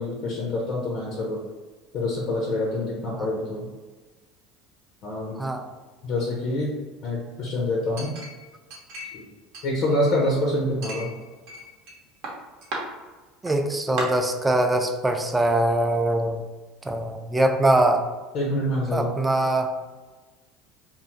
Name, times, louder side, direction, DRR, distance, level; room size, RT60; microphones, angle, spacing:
voice 1, 0.0-1.4 1.9-3.7 5.0-5.4 6.0-6.7 7.0-8.1 9.1-9.2 9.6-11.1 18.3-19.1, left 1 dB, 50° left, -2 dB, 0.5 m, -26 dB
Chink clink, 8.0-9.2 9.5-10.3 10.8-11.9 12.2-12.8 13.5-13.6 14.0-14.1, right 1 dB, 60° right, 0.7 m, -35 dB
voice 2, 13.4-16.4 16.8-18.1 18.9-19.7, right 1 dB, 15° right, 5 dB, 0.3 m, -22 dB
2.7 x 2.2 x 2.6 m, 1.3 s
figure-of-eight pair, 70°, 0 cm